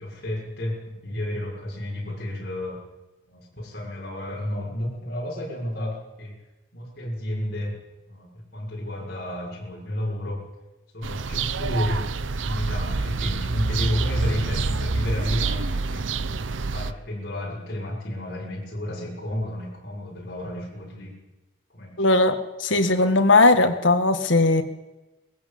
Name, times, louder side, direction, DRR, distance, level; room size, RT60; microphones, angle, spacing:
voice 1, 0.0-2.8 3.3-6.4 6.7-7.8 8.1-10.4 10.9-12.1 12.4-16.1 16.7-21.1 21.7-21.9, left 1 dB, 55° left, -5 dB, 6.6 m, -31 dB
sound 1, 11.0-16.9, right 4 dB, 90° right, 0.8 m, -27 dB
voice 2, 22.0-24.6, left 2 dB, 90° left, 7 dB, 1.9 m, -18 dB
21.5 x 15.5 x 8.7 m, 1.1 s
head